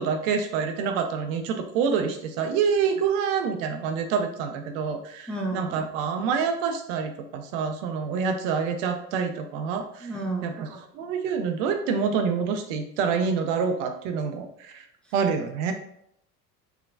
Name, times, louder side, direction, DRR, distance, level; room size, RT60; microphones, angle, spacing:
voice 1, 0.0-10.1 10.4-14.8 15.1-15.7, right 6 dB, 55° right, 6 dB, 0.5 m, -27 dB
voice 2, 5.3-5.8 10.0-10.5 15.0-15.1, right 2 dB, ahead, -1 dB, 0.6 m, -31 dB
3.6 x 3.4 x 2.3 m, 0.72 s
figure-of-eight pair, 65°, 49 cm